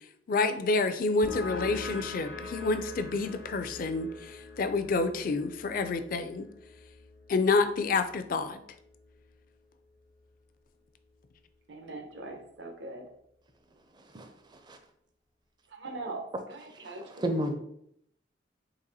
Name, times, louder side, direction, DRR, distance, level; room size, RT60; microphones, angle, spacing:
voice 1, 0.3-6.5 7.3-8.6, left 3 dB, 50° left, 10 dB, 0.4 m, -28 dB
sound 1, 1.2-8.5, left 3 dB, 80° left, 1.1 m, -42 dB
voice 2, 11.7-13.1 15.7-17.5, right 2 dB, 75° right, 4 dB, 0.8 m, -42 dB
voice 3, 14.1-14.8 17.2-17.5, right 1 dB, 25° right, 6 dB, 0.5 m, -32 dB
4.1 x 2.9 x 4.0 m, 0.73 s
head